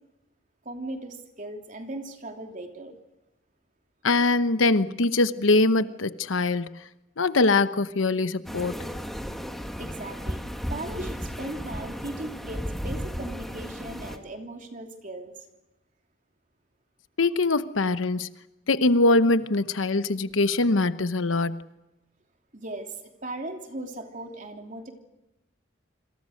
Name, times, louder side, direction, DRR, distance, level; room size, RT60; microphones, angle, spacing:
voice 1, 0.6-3.0 9.8-15.4 22.5-22.9 23.2-24.9, right 1 dB, 40° right, 4 dB, 3.0 m, -38 dB
voice 2, 4.0-6.8 7.2-8.8 17.2-18.3 18.7-21.6, left 2 dB, 85° left, 12 dB, 1.0 m, -23 dB
sound 1, 8.5-14.2, equal, ahead, 1.9 m, -34 dB
28.0 x 26.0 x 6.5 m, 0.96 s
head